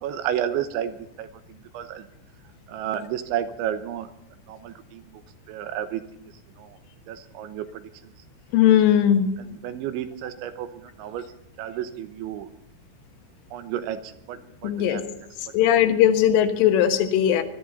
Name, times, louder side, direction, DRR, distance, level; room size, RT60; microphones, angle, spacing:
voice 1, 0.0-2.1 2.7-4.1 4.5-5.2 5.5-6.8 7.1-8.1 9.4-11.3 11.6-12.5 13.5-15.0, right 10 dB, 75° right, 10 dB, 3.2 m, -32 dB
voice 2, 8.5-9.3 14.6-15.0 15.5-17.4, left 10 dB, 80° left, 7 dB, 3.9 m, -18 dB
22.0 x 13.0 x 4.1 m, 0.77 s
omnidirectional pair, 5.6 m